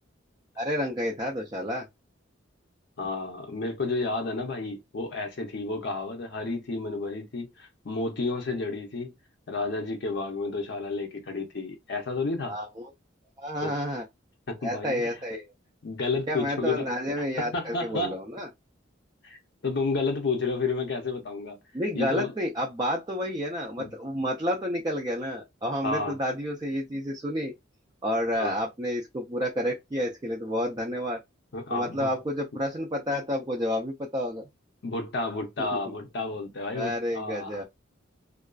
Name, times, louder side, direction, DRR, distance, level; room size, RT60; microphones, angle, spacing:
voice 1, 0.6-1.9 12.5-12.9 13.4-14.0 14.6-15.5 16.3-18.5 21.7-27.5 28.0-31.2 31.7-34.5 35.6-35.8 36.7-37.6, equal, 20° right, 0.3 m, -30 dB
voice 2, 3.0-9.1 9.5-12.6 13.6-13.7 14.5-15.0 15.8-16.9 17.2-18.2 19.2-21.6 21.9-22.3 23.8-23.9 25.8-26.2 28.4-28.5 31.5-32.1 34.8-37.6, left 3 dB, 55° left, 0.6 m, -31 dB
2.4 x 2.3 x 2.3 m
head